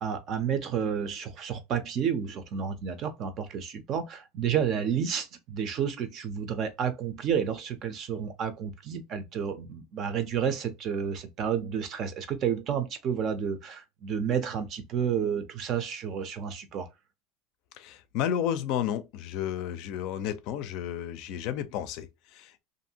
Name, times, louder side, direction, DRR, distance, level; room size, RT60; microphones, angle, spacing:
voice 1, 0.0-16.9, right 8 dB, 40° right, 0.6 m, -30 dB
voice 2, 17.7-22.6, left 10 dB, 55° left, 0.4 m, -32 dB
2.6 x 2.6 x 2.7 m
supercardioid pair, 135°, 0 cm